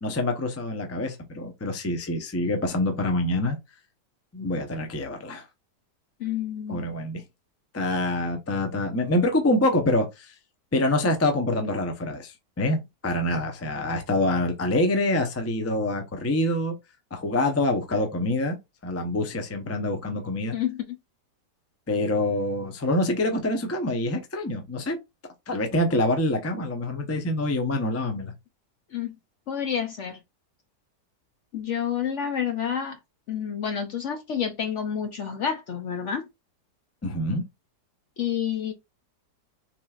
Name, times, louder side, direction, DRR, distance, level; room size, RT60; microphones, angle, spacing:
voice 1, 0.0-3.6 4.3-5.4 6.7-7.2 7.7-10.3 10.7-12.8 13.0-16.7 17.1-18.6 18.8-20.5 21.9-25.0 25.5-28.3 37.0-37.4, left 1 dB, 20° left, 0.3 m, -26 dB
voice 2, 6.2-6.9 20.5-20.8 28.9-29.2 29.5-30.2 31.5-33.0 33.3-36.2 38.2-38.7, left 8 dB, 60° left, 0.8 m, -29 dB
5.9 x 3.4 x 2.4 m
omnidirectional pair, 1.8 m